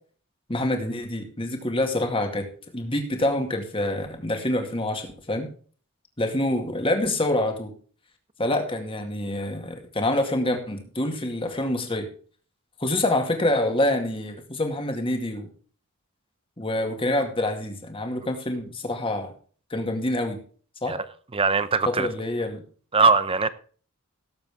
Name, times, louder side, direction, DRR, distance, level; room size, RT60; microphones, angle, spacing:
voice 1, 0.5-2.5 2.7-5.5 6.2-7.7 8.4-12.1 12.8-15.5 16.6-19.3 19.7-20.4 20.8-20.9 21.9-22.6, left 1 dB, 25° left, 2.2 m, -26 dB
voice 2, 21.3-22.1 22.9-23.5, right 4 dB, 25° right, 0.7 m, -21 dB
17.5 x 7.9 x 3.5 m
head